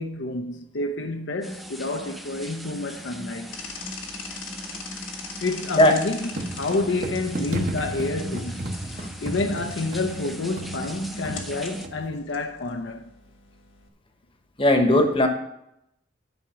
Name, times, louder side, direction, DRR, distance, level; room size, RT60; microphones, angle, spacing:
voice 1, 0.0-3.5 5.4-8.8 9.2-13.1, left 2 dB, 65° left, 0.6 m, -29 dB
sound 1, 1.4-11.9, equal, ahead, 0.4 m, -39 dB
sound 2, 3.5-13.9, left 4 dB, 80° left, 1.5 m, -42 dB
sound 3, 6.3-12.1, right 1 dB, 40° right, 1.0 m, -34 dB
voice 2, 14.6-15.3, left 1 dB, 30° left, 1.0 m, -18 dB
10.5 x 4.9 x 6.9 m
head